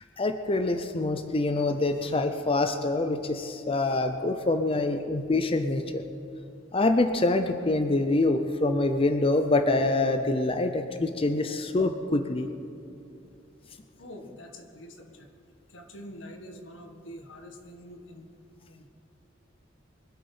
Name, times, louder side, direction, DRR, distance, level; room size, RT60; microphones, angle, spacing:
voice 1, 0.2-6.0 6.7-12.5, left 2 dB, 30° left, 8 dB, 0.6 m, -25 dB
voice 2, 14.0-15.3 15.7-18.3 18.7-18.9, equal, 80° left, 4 dB, 1.6 m, -45 dB
23.5 x 8.4 x 5.6 m, 2.7 s
head